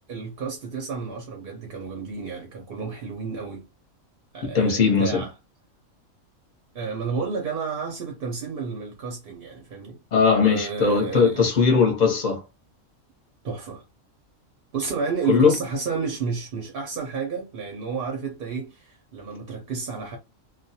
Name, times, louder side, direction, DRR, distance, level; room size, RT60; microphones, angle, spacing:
voice 1, 0.1-3.6 4.3-5.3 6.7-10.0 10.4-11.4 13.4-13.8 14.7-20.2, right 5 dB, 55° right, 0.7 m, -31 dB
voice 2, 4.4-5.2 10.1-12.4 15.3-15.5, left 5 dB, 40° left, 0.8 m, -19 dB
2.3 x 2.2 x 2.7 m
omnidirectional pair, 1.4 m